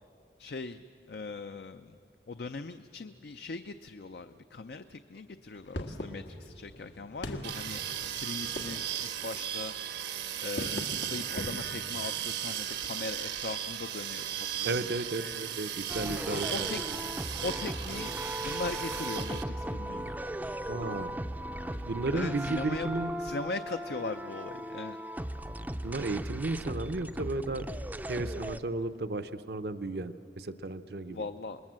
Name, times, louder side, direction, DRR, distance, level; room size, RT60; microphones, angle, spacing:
voice 1, 0.4-2.0 2.3-7.8 8.2-9.7 10.4-14.9 16.3-16.8 17.4-20.1 22.1-22.9 23.2-25.0 31.1-31.6, left 3 dB, 60° left, 9 dB, 0.5 m, -39 dB
sound 1, 5.5-21.4, left 1 dB, 90° left, 1.7 m, -46 dB
sound 2, 7.4-19.4, right 10 dB, 80° right, 1.2 m, -36 dB
voice 2, 14.6-16.5 20.7-21.2 21.8-23.1 25.8-27.7 28.1-31.2, right 2 dB, 65° right, 11 dB, 0.7 m, -34 dB
sound 3, 15.9-28.6, right 1 dB, 10° right, 0.5 m, -37 dB
26.5 x 21.0 x 7.5 m, 2.8 s
head